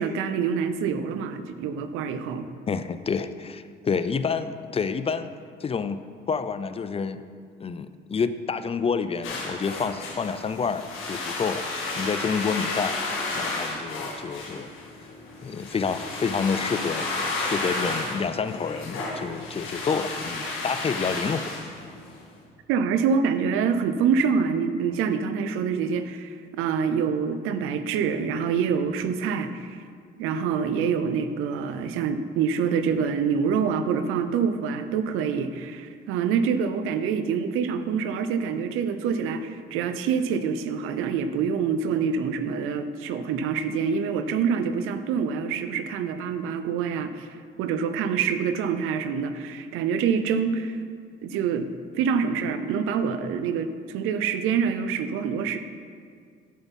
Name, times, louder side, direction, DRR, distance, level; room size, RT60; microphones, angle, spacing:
voice 1, 0.0-2.5 22.7-29.8 30.2-50.8 51.2-51.7 51.9-55.6, right 6 dB, 90° right, 10 dB, 0.6 m, -26 dB
voice 2, 2.7-5.3 5.6-7.2 7.6-11.7 12.0-13.0 13.3-14.7 15.4-17.1 17.4-21.6, left 5 dB, 30° left, 12 dB, 0.4 m, -28 dB
sound 1, 9.2-22.2, left 3 dB, 80° left, 1.9 m, -32 dB
9.5 x 6.9 x 4.1 m, 2.1 s
cardioid pair, 90°, 21 cm